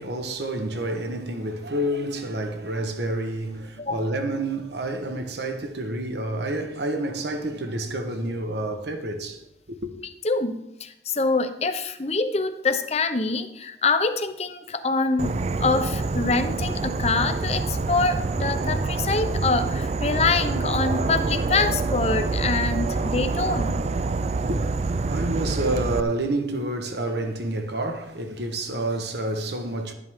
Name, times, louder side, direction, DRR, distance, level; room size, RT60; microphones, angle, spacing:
voice 1, 0.0-9.9 24.2-29.9, right 1 dB, 75° right, 1.3 m, -29 dB
voice 2, 10.2-15.3 15.6-23.8, left 3 dB, 35° left, 0.8 m, -25 dB
Insect / Frog, 15.2-26.0, right 3 dB, 35° right, 0.4 m, -26 dB
12.0 x 10.5 x 3.6 m
head